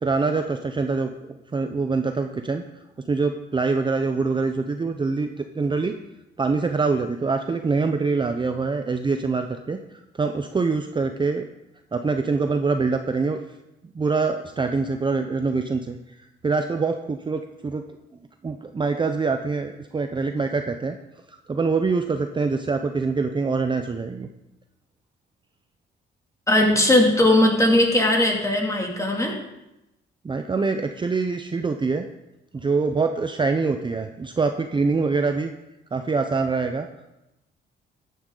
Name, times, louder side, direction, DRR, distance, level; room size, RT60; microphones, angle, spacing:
voice 1, 0.0-2.6 3.1-5.9 6.4-11.5 11.9-13.4 13.9-16.0 16.4-17.8 18.4-21.0 21.3-24.3 30.2-32.1 32.5-35.5 35.9-36.9, right 4 dB, 25° right, 6 dB, 0.7 m, -24 dB
voice 2, 26.5-29.3, left 1 dB, 15° left, 0 dB, 2.7 m, -19 dB
14.0 x 9.4 x 3.9 m, 0.93 s
cardioid pair, 90°, 20 cm